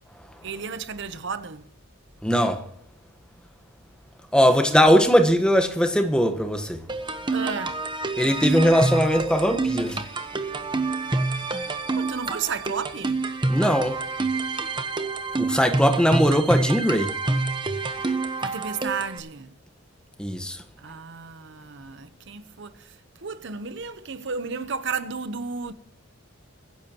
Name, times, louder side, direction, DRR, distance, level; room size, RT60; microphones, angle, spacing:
voice 1, 0.4-1.6 7.3-7.8 12.0-13.2 18.4-19.5 20.8-22.7 23.2-25.7, right 5 dB, 60° right, 0.9 m, -33 dB
voice 2, 2.2-2.6 4.3-6.8 8.2-10.0 13.5-14.0 15.4-17.1 18.0-18.1 20.2-20.6, equal, 5° left, 1.3 m, -20 dB
sound 1, 6.9-19.2, right 3 dB, 25° right, 1.0 m, -27 dB
23.5 x 10.5 x 3.0 m
head